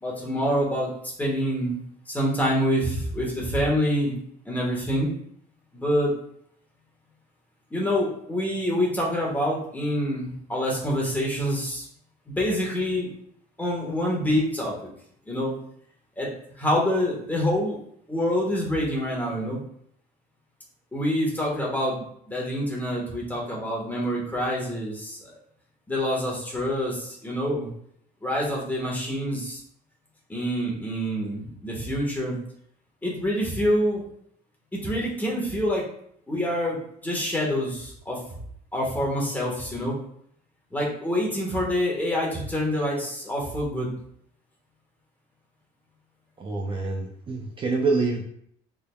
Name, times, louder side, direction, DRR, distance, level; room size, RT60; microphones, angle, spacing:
voice 1, 0.0-0.9 1.2-1.8 2.1-4.2 4.4-5.1 5.7-6.1 7.7-11.8 12.3-13.1 13.6-14.7 15.3-15.6 16.2-16.3 16.6-17.8 18.1-19.6 20.9-25.2 25.9-27.7 28.2-29.6 30.3-32.4 33.0-34.0 34.7-35.8 36.3-38.2 38.7-39.9 40.7-43.9, equal, 10° left, -3 dB, 1.3 m, -26 dB
voice 2, 46.4-48.2, right 3 dB, 30° right, 0 dB, 0.5 m, -26 dB
3.7 x 3.5 x 2.3 m, 0.67 s
cardioid pair, 110°, 17 cm